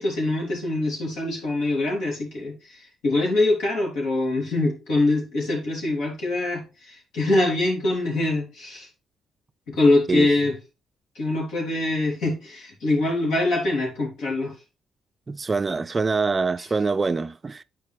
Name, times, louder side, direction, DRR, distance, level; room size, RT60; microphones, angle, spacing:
voice 1, 0.0-8.9 9.7-10.5 11.2-14.6, left 2 dB, 85° left, 3.4 m, -24 dB
voice 2, 15.3-17.6, right 4 dB, 30° right, 0.3 m, -24 dB
9.6 x 4.7 x 3.3 m
cardioid pair, 90°, 0 cm